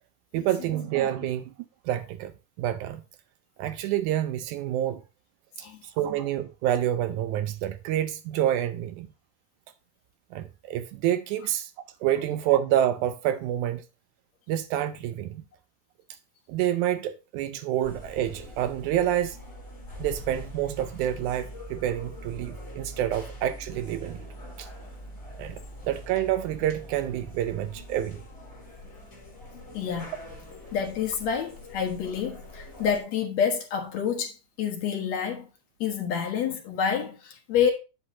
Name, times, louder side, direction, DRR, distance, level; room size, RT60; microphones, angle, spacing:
voice 1, 0.3-1.5 1.9-2.3 2.6-3.0 3.6-5.0 5.8-9.1 10.3-11.7 12.0-13.8 14.5-15.4 16.5-19.4 20.0-24.2 24.6-24.7 25.4-28.2, right 12 dB, 80° right, 1.9 m, -28 dB
sound 1, 17.8-33.0, equal, 20° left, 3.2 m, -43 dB
voice 2, 29.7-30.1 30.7-34.3 34.6-35.5 35.8-37.7, left 7 dB, 65° left, 2.5 m, -28 dB
8.2 x 7.2 x 2.7 m
omnidirectional pair, 3.7 m